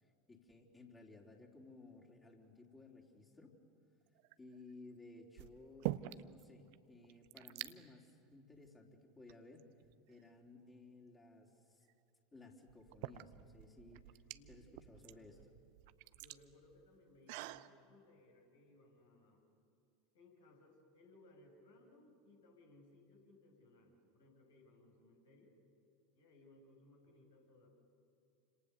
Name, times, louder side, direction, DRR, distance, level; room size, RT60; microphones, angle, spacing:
voice 1, 0.0-3.6 4.4-9.7 10.1-11.9 12.3-14.2 14.5-15.4, left 2 dB, 20° left, -1 dB, 3.7 m, -58 dB
sound 1, 4.1-4.6 5.4-6.4 6.7-6.8 7.0-7.7 8.5-8.7 9.3-10.2 11.9-12.0 12.7-17.7, right 18 dB, 55° right, 0.7 m, -46 dB
voice 2, 14.3-15.3 16.1-19.4 20.1-25.5 26.1-27.7, left 2 dB, 70° left, 0 dB, 6.2 m, -65 dB
29.0 x 26.5 x 6.9 m, 2.5 s
figure-of-eight pair, 80°, 0 cm